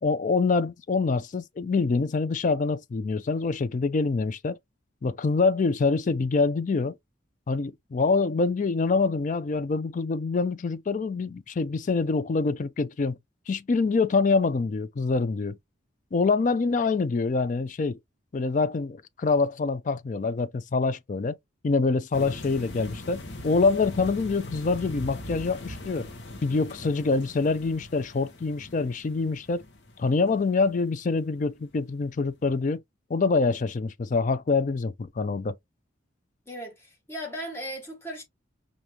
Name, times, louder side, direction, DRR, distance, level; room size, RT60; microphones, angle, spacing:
voice 1, 0.0-4.6 5.0-6.9 7.5-13.2 13.5-15.6 16.1-18.0 18.3-21.3 21.6-26.1 26.4-29.6 30.0-32.8 33.1-35.6, left 4 dB, 40° left, 0.3 m, -25 dB
sound 1, 22.1-31.2 31.7-31.9 32.2-32.3, left 1 dB, 55° left, 1.0 m, -41 dB
voice 2, 36.5-38.2, equal, 10° left, 1.5 m, -37 dB
4.9 x 2.7 x 2.8 m
head